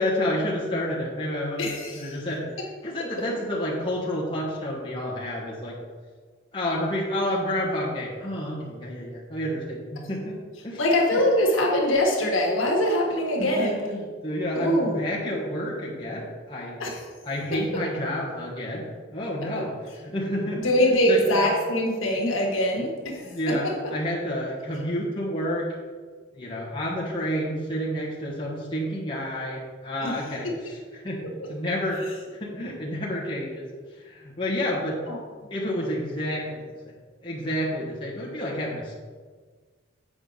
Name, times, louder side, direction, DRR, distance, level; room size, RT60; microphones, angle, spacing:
voice 1, 0.0-2.4 2.8-5.7 6.5-10.4 10.6-10.8 11.1-11.2 13.4-16.8 17.2-19.7 20.0-21.2 23.2-25.7 26.3-33.6 34.0-35.0 35.5-36.9 37.2-38.9, left 1 dB, 25° left, -6 dB, 1.4 m, -30 dB
voice 2, 1.6-2.1 10.8-13.8 14.5-15.0 16.8-17.0 17.7-17.8 20.6-23.2 30.0-30.1 35.1-35.2, equal, 80° left, -2 dB, 1.5 m, -23 dB
7.8 x 5.0 x 4.0 m, 1.5 s
head